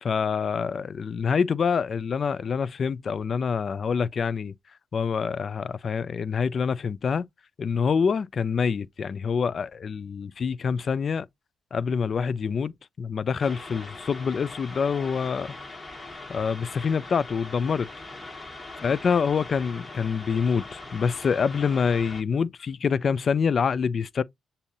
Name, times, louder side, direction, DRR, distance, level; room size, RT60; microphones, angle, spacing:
voice 1, 0.0-4.5 4.9-7.2 7.6-11.3 11.7-12.7 13.0-15.5 16.3-17.9 18.8-24.2, left 6 dB, 50° left, 0.4 m, -26 dB
sound 1, 13.4-22.2, left 2 dB, 25° left, 1.4 m, -41 dB
7.0 x 2.7 x 2.5 m
cardioid pair, 70°, 0 cm